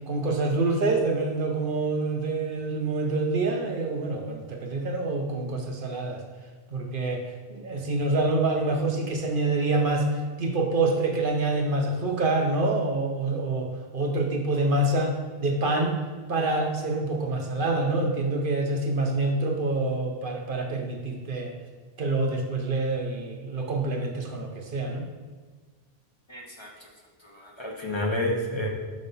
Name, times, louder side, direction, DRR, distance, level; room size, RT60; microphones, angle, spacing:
voice 1, 0.1-6.2 6.7-15.9 16.3-21.5 22.0-25.1, right 2 dB, 60° right, 3 dB, 0.8 m, -26 dB
voice 2, 26.3-26.9 27.2-28.7, left 1 dB, 30° left, -2 dB, 1.0 m, -30 dB
5.5 x 5.2 x 5.4 m, 1.5 s
omnidirectional pair, 1.1 m